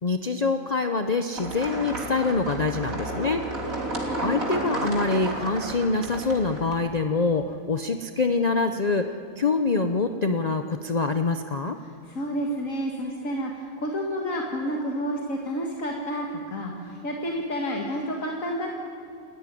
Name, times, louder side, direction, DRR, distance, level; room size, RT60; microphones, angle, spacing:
voice 1, 0.0-3.5 4.2-11.8, left 3 dB, 35° left, 7 dB, 0.7 m, -25 dB
sound 1, 1.4-6.8, right 1 dB, 90° right, 3.6 m, -32 dB
voice 2, 11.8-18.8, equal, 75° left, 0 dB, 2.3 m, -30 dB
28.5 x 14.0 x 9.9 m, 2.4 s
omnidirectional pair, 1.4 m